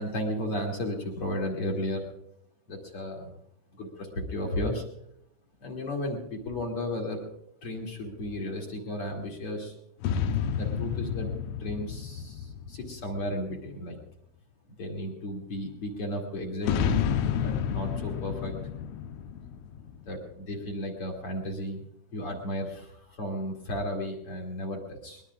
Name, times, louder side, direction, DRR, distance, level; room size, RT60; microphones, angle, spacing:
voice 1, 0.0-2.1 2.7-3.3 3.7-4.8 5.6-7.3 7.6-9.8 10.6-14.0 14.7-17.1 17.3-18.6 20.1-21.9 22.1-25.2, left 1 dB, 40° left, 0 dB, 2.4 m, -34 dB
sound 1, 10.0-13.7 16.6-20.4, left 8 dB, 90° left, 3.5 m, -30 dB
22.0 x 21.5 x 2.5 m, 0.75 s
omnidirectional pair, 5.5 m